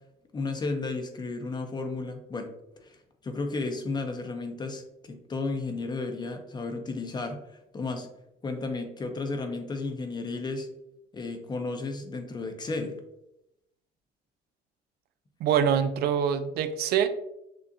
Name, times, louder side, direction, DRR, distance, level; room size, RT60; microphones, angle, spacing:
voice 1, 0.3-2.5 2.8-3.0 3.2-7.4 7.7-8.1 8.4-10.7 11.1-13.0, left 3 dB, 25° left, 6 dB, 0.7 m, -33 dB
voice 2, 15.4-17.1, right 8 dB, 70° right, 10 dB, 0.4 m, -24 dB
6.3 x 2.4 x 2.7 m, 0.85 s
cardioid pair, 110°, 17 cm